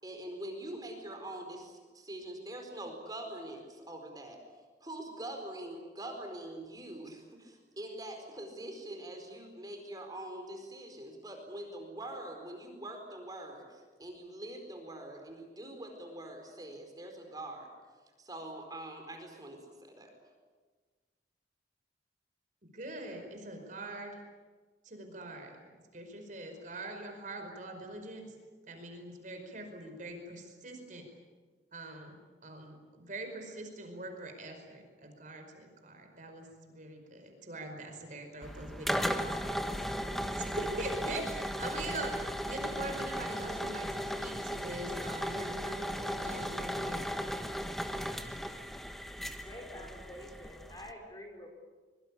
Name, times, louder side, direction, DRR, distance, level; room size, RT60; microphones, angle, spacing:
voice 1, 0.0-4.4 4.8-17.7 18.2-20.1, right 1 dB, 20° right, 4 dB, 4.6 m, -44 dB
voice 2, 22.6-24.2 24.8-28.3 28.7-31.0 31.7-32.2 32.4-42.2 42.5-47.0, right 2 dB, 45° right, 4 dB, 5.0 m, -43 dB
sound 1, 38.4-50.9, equal, ahead, 1.2 m, -36 dB
voice 3, 49.3-51.5, left 1 dB, 20° left, 2 dB, 5.3 m, -47 dB
24.5 x 23.5 x 8.6 m, 1.4 s
head